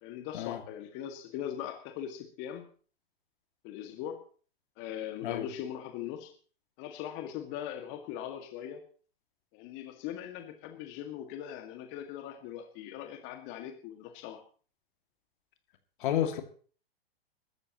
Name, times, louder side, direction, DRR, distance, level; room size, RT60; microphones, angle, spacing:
voice 1, 0.0-2.7 3.6-4.2 4.8-6.3 6.8-8.8 9.5-14.4, left 10 dB, 40° left, 5 dB, 2.0 m, -40 dB
voice 2, 16.0-16.4, left 10 dB, 55° left, 6 dB, 2.4 m, -30 dB
23.5 x 13.5 x 3.0 m, 0.41 s
figure-of-eight pair, 110°, 30 cm